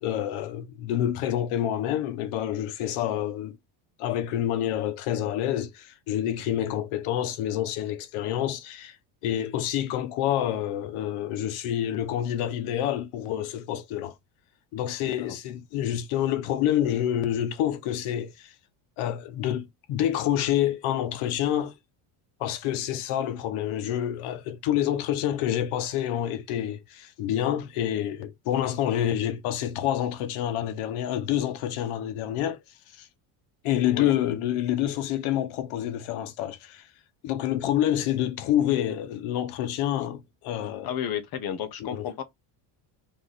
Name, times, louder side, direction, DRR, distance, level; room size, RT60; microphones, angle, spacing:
voice 1, 0.0-3.6 4.0-9.0 9.2-14.1 14.7-18.5 19.0-21.7 22.4-32.6 32.9-33.1 33.6-36.9 37.2-40.9 41.8-42.1, left 11 dB, 85° left, 1.1 m, -28 dB
voice 2, 15.0-15.4 33.9-34.1 40.8-42.2, left 9 dB, 45° left, 1.2 m, -32 dB
3.7 x 3.1 x 4.0 m
cardioid pair, 155°, 49 cm